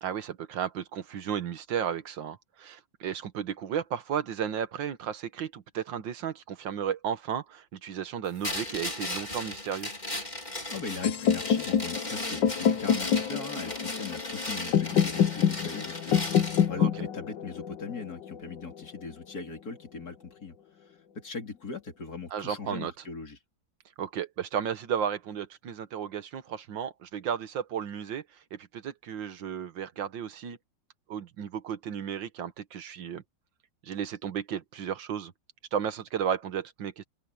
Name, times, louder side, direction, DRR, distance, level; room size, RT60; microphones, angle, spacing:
voice 1, 0.0-9.9 16.8-16.9 22.3-22.9 24.0-30.6 31.1-33.2 33.8-35.3 35.7-37.0, right 8 dB, 85° right, 2.0 m, -34 dB
sound 1, 8.4-16.7, left 1 dB, 20° left, 3.9 m, -36 dB
voice 2, 10.7-20.6 20.9-23.4, left 4 dB, 55° left, 4.2 m, -40 dB
sound 2, 11.0-19.0, left 8 dB, 75° left, 1.6 m, -27 dB
open air
omnidirectional pair, 2.0 m